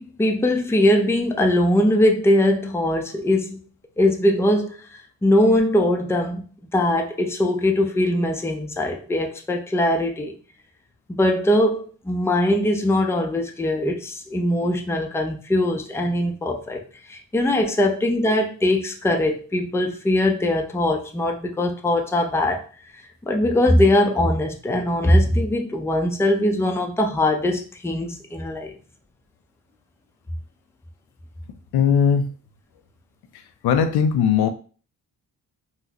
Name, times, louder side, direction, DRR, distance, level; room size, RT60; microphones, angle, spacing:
voice 1, 0.0-3.6 4.0-4.7 5.2-6.4 6.7-10.3 11.1-16.8 17.1-22.6 23.3-28.8, left 1 dB, 5° left, 0.5 m, -21 dB
voice 2, 31.7-32.3 33.6-34.5, left 7 dB, 80° left, 0.5 m, -18 dB
3.9 x 2.1 x 2.8 m
cardioid pair, 85°, 38 cm